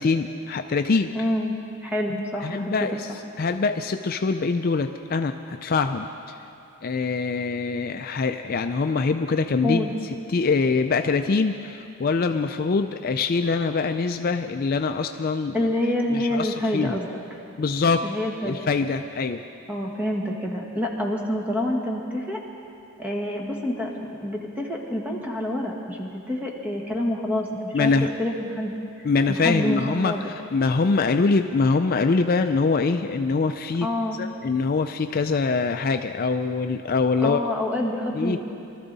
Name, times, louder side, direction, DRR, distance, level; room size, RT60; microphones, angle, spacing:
voice 1, 0.0-1.1 2.1-3.1 3.4-6.4 6.8-15.7 16.1-17.0 17.6-18.1 18.4-19.4 27.7-28.1 29.0-33.9 34.2-37.4 38.1-38.4, left 4 dB, 40° left, 7 dB, 0.4 m, -24 dB
voice 2, 1.1-1.5 1.8-2.8 9.6-9.9 15.5-17.1 18.0-18.7 19.7-22.4 23.0-27.9 28.2-28.7 29.4-30.3 33.8-34.2 37.2-38.4, left 1 dB, 5° right, -1 dB, 1.5 m, -27 dB
23.5 x 13.5 x 4.0 m, 2.7 s
head